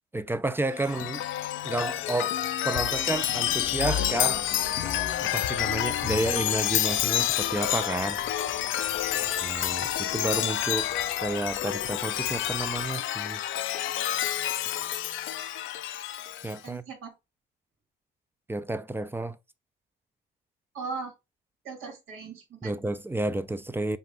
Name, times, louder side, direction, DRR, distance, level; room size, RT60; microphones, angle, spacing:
voice 1, 0.1-1.2 1.6-2.4 2.6-4.5 5.2-8.2 9.4-10.9 11.2-13.4 16.4-16.8 18.5-19.4 22.6-24.0, right 2 dB, 10° right, 0.4 m, -31 dB
Chime, 0.7-16.6, left 12 dB, 75° left, 0.5 m, -29 dB
sound 1, 3.4-12.9, right 4 dB, 45° right, 1.5 m, -48 dB
voice 2, 16.6-17.1 20.7-21.1 21.6-22.8, right 4 dB, 85° right, 2.0 m, -38 dB
5.4 x 2.5 x 3.4 m
cardioid pair, 90°, 20 cm